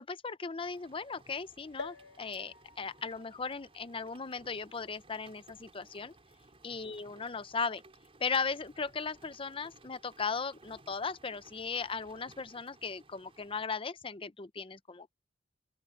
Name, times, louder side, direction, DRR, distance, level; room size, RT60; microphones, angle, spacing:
voice 1, 0.0-6.1 6.6-7.8 8.2-15.1, left 5 dB, 30° left, 0.7 m, -37 dB
Rain, 0.6-13.6, right 2 dB, 30° right, 5.1 m, -60 dB
sound 1, 1.8-5.5 6.1-6.2 6.4-6.5, left 4 dB, 65° left, 1.9 m, -50 dB
open air
head